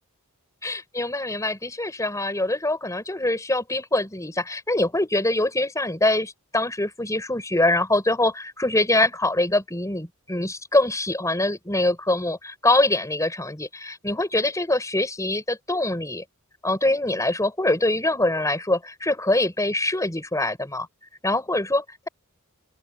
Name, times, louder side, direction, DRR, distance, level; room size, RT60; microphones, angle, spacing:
voice 1, 0.6-16.2 16.6-20.9 21.2-22.1, left 2 dB, 15° left, 4.9 m, -24 dB
open air
head